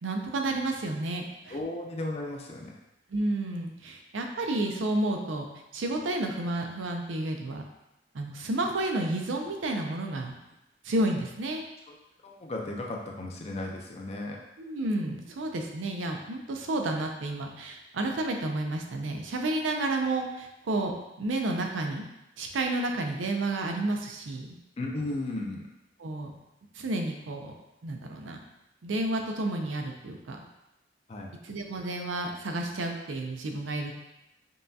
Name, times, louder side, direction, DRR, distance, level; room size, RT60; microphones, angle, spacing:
voice 1, 0.0-1.6 3.1-5.5 5.7-7.7 8.1-10.3 10.8-11.6 14.6-20.9 21.2-22.0 22.4-24.5 26.0-26.3 26.7-27.5 27.8-28.4 28.8-30.4 31.4-33.9, right 2 dB, 80° right, 3 dB, 0.5 m, -31 dB
voice 2, 1.5-2.7 12.2-14.4 24.8-25.6 31.1-31.4, left 2 dB, 35° left, 0 dB, 0.5 m, -35 dB
5.4 x 2.3 x 2.7 m, 0.92 s
head